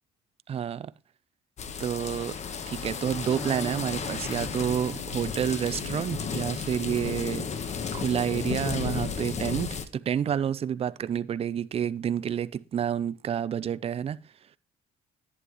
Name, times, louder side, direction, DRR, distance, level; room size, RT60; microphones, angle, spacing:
voice 1, 0.5-0.9 1.8-2.4 2.7-7.7 7.9-14.2, right 9 dB, 35° right, 0.5 m, -29 dB
sound 1, 1.6-9.8, left 6 dB, 40° left, 1.2 m, -33 dB
Electric guitar, 3.4-11.2, right 2 dB, ahead, 0.9 m, -47 dB
11.0 x 9.6 x 3.1 m
cardioid pair, 110°, 17 cm